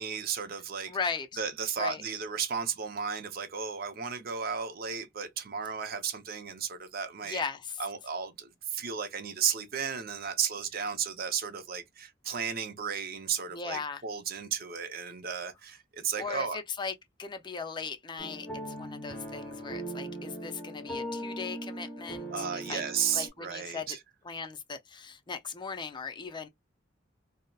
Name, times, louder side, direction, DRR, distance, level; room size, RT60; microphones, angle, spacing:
voice 1, 0.0-0.9 1.4-7.4 7.8-16.6 22.3-24.0, right 7 dB, 55° right, 0.6 m, -34 dB
voice 2, 0.9-1.4 1.8-2.0 7.2-7.8 13.5-14.0 16.2-16.9 17.2-22.8 23.1-24.0 24.2-26.5, left 5 dB, 25° left, 0.4 m, -38 dB
sound 1, 18.2-23.3, right 1 dB, 5° left, 1.0 m, -39 dB
2.7 x 2.0 x 2.2 m
head